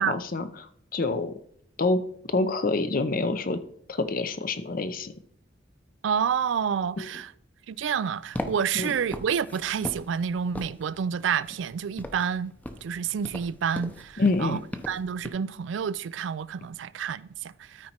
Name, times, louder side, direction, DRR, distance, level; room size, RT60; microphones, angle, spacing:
voice 1, 0.0-1.3 1.8-2.0 2.3-3.6 3.9-5.1 7.0-7.1 8.7-8.9 14.2-14.6, left 3 dB, 50° left, 0.6 m, -27 dB
voice 2, 6.0-7.3 7.7-12.5 12.8-14.6 14.9-17.9, right 7 dB, 75° right, 0.4 m, -29 dB
sound 1, 8.2-15.3, left 1 dB, 10° left, 0.7 m, -40 dB
13.0 x 4.4 x 4.3 m
head